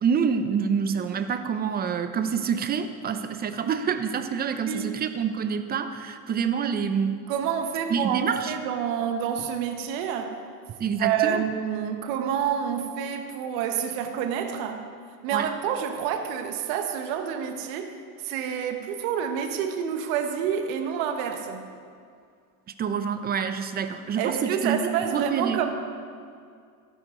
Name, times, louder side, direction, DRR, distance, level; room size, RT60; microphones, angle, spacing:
voice 1, 0.0-7.3 7.9-8.5 10.8-11.5 15.3-15.5 22.8-25.6, right 6 dB, 20° right, 9 dB, 0.7 m, -27 dB
voice 2, 7.3-10.4 11.0-14.8 15.2-17.9 18.2-21.7 24.2-25.7, right 8 dB, 60° right, 6 dB, 1.3 m, -28 dB
13.5 x 11.5 x 3.8 m, 2.3 s
supercardioid pair, 125°, 45 cm